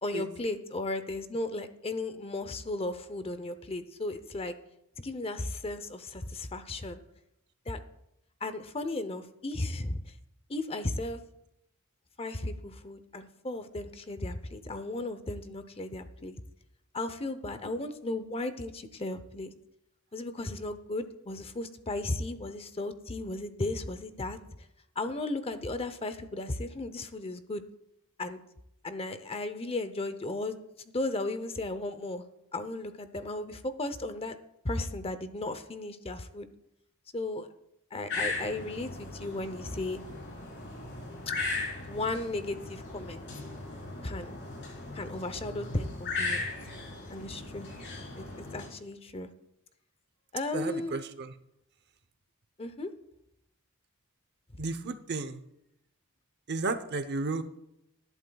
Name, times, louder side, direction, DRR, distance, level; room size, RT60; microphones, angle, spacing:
voice 1, 0.0-4.5 5.0-7.0 7.7-7.8 8.4-10.0 10.5-11.2 12.2-16.4 16.9-19.5 20.1-24.4 25.0-27.6 28.2-28.4 28.8-30.6 30.9-32.2 32.5-34.4 34.6-36.5 37.1-37.5 37.9-40.0 41.9-43.2 44.0-44.4 44.9-46.5 47.1-47.7 48.2-49.3 50.3-50.9 52.6-52.9, left 2 dB, 25° left, 11 dB, 0.7 m, -35 dB
sound 1, 38.1-48.7, left 3 dB, 55° left, 4.2 m, -38 dB
voice 2, 50.5-51.3 54.6-55.4 56.5-57.4, right 3 dB, 50° right, 10 dB, 0.8 m, -33 dB
19.5 x 11.0 x 2.3 m, 0.81 s
head